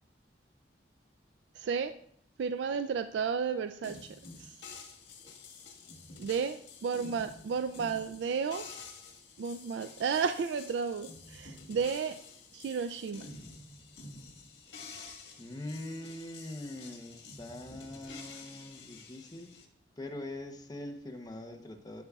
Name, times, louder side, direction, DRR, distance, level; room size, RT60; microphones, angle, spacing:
voice 1, 1.6-1.9 2.4-4.6 6.2-8.7 9.4-12.2 12.5-13.3, right 6 dB, 80° right, 10 dB, 0.3 m, -33 dB
sound 1, 3.8-19.7, left 4 dB, 85° left, 1.6 m, -49 dB
voice 2, 15.4-19.5 20.0-22.0, left 1 dB, 20° left, 4 dB, 0.8 m, -43 dB
11.5 x 6.9 x 2.4 m, 0.69 s
head